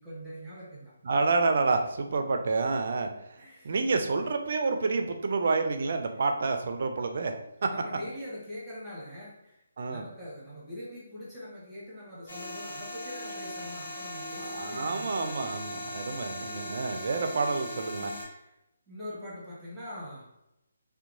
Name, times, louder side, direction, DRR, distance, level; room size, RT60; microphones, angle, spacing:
voice 1, 0.0-0.9 3.4-3.7 7.7-9.6 9.9-15.8 18.2-18.5 18.9-20.3, left 1 dB, 10° right, -8 dB, 1.0 m, -43 dB
voice 2, 1.0-7.7 9.8-10.0 14.4-18.1, right 3 dB, 55° right, 5 dB, 0.4 m, -29 dB
sound 1, 12.3-18.2, left 1 dB, 60° left, 1.4 m, -39 dB
2.8 x 2.2 x 2.6 m, 0.87 s
figure-of-eight pair, 150°, 0 cm